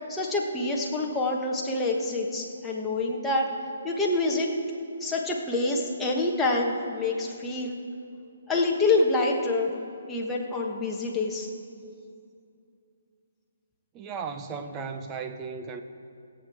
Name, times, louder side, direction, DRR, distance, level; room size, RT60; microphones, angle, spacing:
voice 1, 0.1-3.5 3.8-4.5 5.0-7.8 8.5-9.7 10.1-11.5, left 2 dB, 10° left, -2 dB, 1.2 m, -26 dB
voice 2, 13.9-15.8, right 5 dB, 20° right, 7 dB, 0.7 m, -35 dB
17.5 x 7.9 x 4.8 m, 2.4 s
hypercardioid pair, 155°, 0 cm